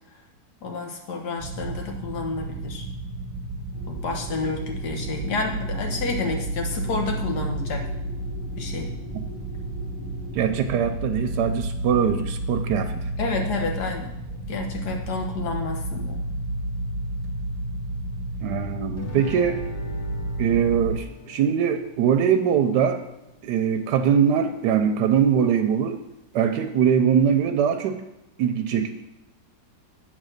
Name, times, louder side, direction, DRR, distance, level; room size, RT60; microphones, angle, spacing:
voice 1, 0.6-2.9 3.9-7.9 8.6-8.9 13.2-14.1 14.5-16.2, left 3 dB, 70° left, 2 dB, 1.7 m, -30 dB
sound 1, 1.4-21.0, right 1 dB, 15° right, 1.7 m, -31 dB
sound 2, 3.7-10.6, right 1 dB, 40° left, 3.4 m, -43 dB
voice 2, 10.3-13.0 18.4-19.6 20.4-23.0 23.4-26.0 26.3-28.0 28.4-28.9, right 8 dB, 80° right, 6 dB, 1.2 m, -22 dB
Guitar, 19.0-24.0, left 1 dB, 20° left, 0.9 m, -41 dB
8.3 x 3.8 x 6.5 m, 0.94 s
omnidirectional pair, 1.9 m